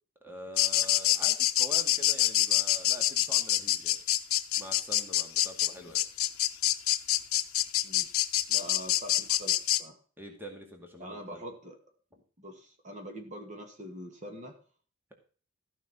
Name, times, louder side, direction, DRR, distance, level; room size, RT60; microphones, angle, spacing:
voice 1, 0.2-4.0 4.6-6.0 10.2-11.4, equal, 10° right, 2 dB, 2.2 m, -45 dB
sound 1, 0.6-9.8, left 14 dB, 75° left, 0.8 m, -26 dB
voice 2, 8.5-10.0 11.0-11.8 12.4-14.6, equal, 35° right, 4 dB, 2.2 m, -44 dB
14.5 x 6.0 x 5.6 m, 0.41 s
head